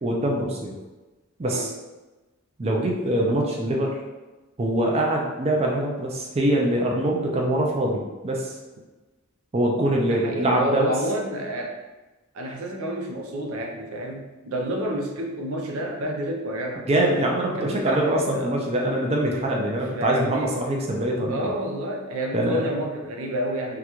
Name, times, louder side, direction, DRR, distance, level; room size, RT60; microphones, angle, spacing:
voice 1, 0.0-0.7 1.4-1.7 2.6-4.0 4.6-8.5 9.5-10.9 16.9-21.5 22.3-22.7, right 1 dB, 30° right, -1 dB, 0.4 m, -23 dB
voice 2, 1.4-1.7 10.1-11.8 12.3-16.9 17.5-18.7 19.9-20.6 21.3-23.8, right 1 dB, 75° right, 2 dB, 0.5 m, -29 dB
3.7 x 2.2 x 3.0 m, 1.2 s
head